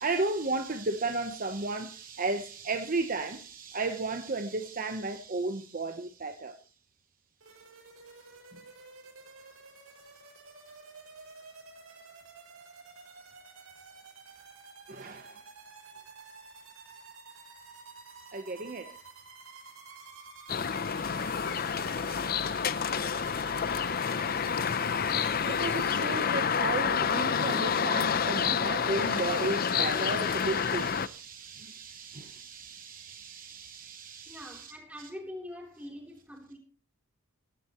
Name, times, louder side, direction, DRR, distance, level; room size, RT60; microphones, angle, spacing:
voice 1, 0.0-6.6 8.5-8.6 14.9-15.4 18.3-19.0 25.5-34.7, right 3 dB, 40° right, 0.9 m, -34 dB
sound 1, 7.4-26.0, right 4 dB, 80° right, 6.2 m, -50 dB
sound 2, 20.5-31.1, left 6 dB, 45° left, 0.6 m, -29 dB
voice 2, 34.3-36.6, left 1 dB, 5° right, 3.5 m, -44 dB
17.0 x 14.5 x 3.0 m
head